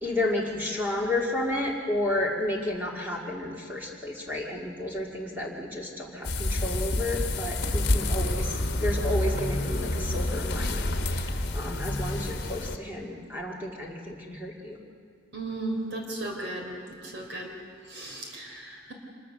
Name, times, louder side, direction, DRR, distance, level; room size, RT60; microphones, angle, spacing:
voice 1, 0.0-14.9, left 1 dB, 10° right, -3 dB, 2.1 m, -32 dB
sound 1, 6.2-12.8, left 1 dB, 55° left, 1.3 m, -28 dB
voice 2, 15.3-16.8 17.0-17.6 17.9-18.9, right 2 dB, 65° right, 1 dB, 3.7 m, -35 dB
26.0 x 22.5 x 6.6 m, 2.3 s
head